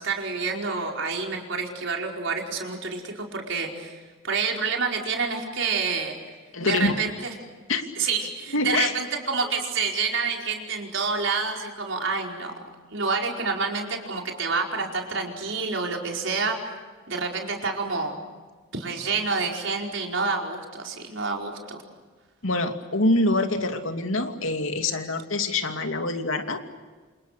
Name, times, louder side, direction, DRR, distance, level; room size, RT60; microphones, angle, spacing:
voice 1, 0.0-4.0 4.2-6.1 6.6-7.3 8.0-12.5 12.9-16.6 17.1-18.2 18.7-21.8, right 4 dB, 65° right, 1 dB, 4.9 m, -28 dB
voice 2, 6.5-7.0 7.7-7.9 8.5-8.9 22.4-26.6, left 2 dB, 80° left, 5 dB, 2.7 m, -25 dB
28.5 x 27.5 x 6.7 m, 1.4 s
head